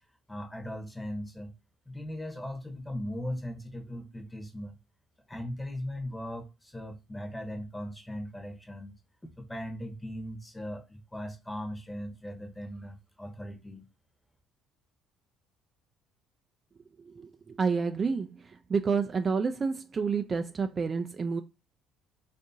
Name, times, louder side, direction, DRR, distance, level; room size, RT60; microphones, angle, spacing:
voice 1, 0.3-1.5 1.9-4.8 5.3-9.0 9.4-13.9, equal, 10° left, 0.9 m, -38 dB
voice 2, 17.1-18.3 18.7-21.4, right 5 dB, 35° right, 0.3 m, -29 dB
3.4 x 2.5 x 2.6 m
hypercardioid pair, 55°, 0 cm